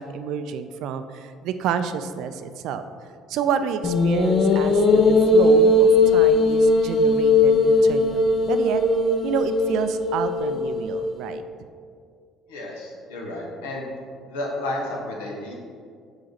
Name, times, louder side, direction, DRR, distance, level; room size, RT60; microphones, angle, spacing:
voice 1, 0.0-2.8 3.3-8.8 9.2-11.4, right 7 dB, 65° right, 10 dB, 0.3 m, -29 dB
sound 1, 3.8-11.2, left 2 dB, 45° left, 0.6 m, -19 dB
voice 2, 12.5-13.9 14.3-15.5, left 1 dB, 80° left, -2 dB, 1.1 m, -31 dB
5.0 x 4.9 x 4.0 m, 2.2 s
hypercardioid pair, 55°, 0 cm